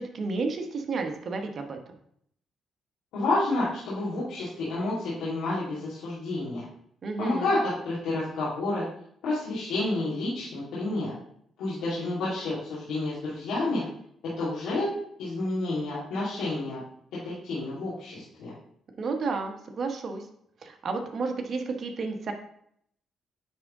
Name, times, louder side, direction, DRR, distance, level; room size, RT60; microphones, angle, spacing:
voice 1, 0.0-1.8 7.0-7.5 19.0-20.3 20.6-22.3, right 4 dB, 50° right, 4 dB, 1.1 m, -31 dB
voice 2, 3.1-6.6 7.2-8.9 9.2-11.1 11.6-13.8 14.2-16.8 17.1-18.5, left 2 dB, 90° left, -10 dB, 2.3 m, -30 dB
9.3 x 3.6 x 3.6 m, 0.69 s
cardioid pair, 90°, 0 cm